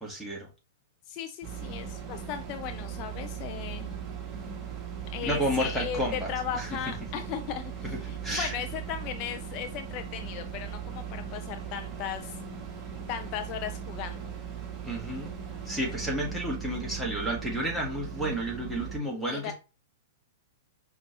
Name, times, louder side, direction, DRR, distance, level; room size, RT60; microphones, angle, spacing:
voice 1, 0.0-0.5 5.2-6.7 8.2-8.5 14.8-15.3 15.7-19.5, equal, ahead, 1.4 m, -31 dB
voice 2, 1.1-3.9 5.1-12.4 13.1-14.3 19.0-19.5, left 9 dB, 40° left, 0.3 m, -37 dB
sound 1, 1.4-19.0, right 8 dB, 25° right, 1.3 m, -38 dB
5.1 x 2.4 x 2.8 m
figure-of-eight pair, 105°, 0 cm